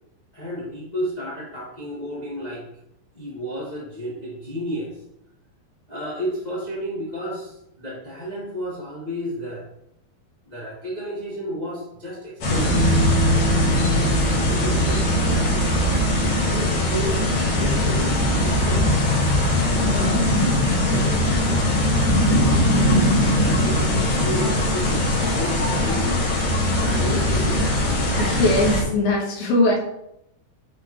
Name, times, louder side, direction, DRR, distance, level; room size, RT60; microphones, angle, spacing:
voice 1, 0.3-2.6 3.1-5.0 5.9-9.7 10.4-12.8 13.9-15.6 16.0-17.2 17.5-18.9 19.7-20.3 20.8-21.7 22.2-26.0 26.7-27.6, equal, 30° left, -7 dB, 0.7 m, -32 dB
sound 1, 12.4-28.8, left 1 dB, 55° left, 2.4 m, -20 dB
sound 2, 12.7-25.8, equal, 25° right, 1.2 m, -30 dB
voice 2, 28.2-29.8, left 2 dB, 85° left, -2 dB, 2.8 m, -20 dB
7.6 x 4.2 x 3.1 m, 0.79 s
omnidirectional pair, 4.2 m